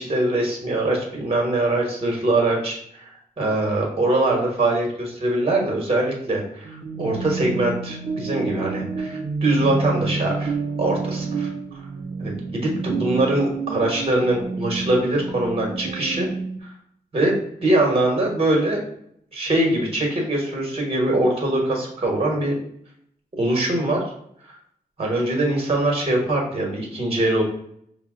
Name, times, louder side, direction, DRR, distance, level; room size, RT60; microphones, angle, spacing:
voice 1, 0.0-3.1 3.4-11.8 12.2-16.3 16.6-16.7 17.1-18.8 19.3-22.5 23.3-24.0 24.4-24.5 25.0-27.4, right 1 dB, 40° right, 0 dB, 1.1 m, -23 dB
sound 1, 6.6-16.6, right 4 dB, 75° right, 0.5 m, -29 dB
5.4 x 2.1 x 3.6 m, 0.70 s
wide cardioid pair, 105°, 15 cm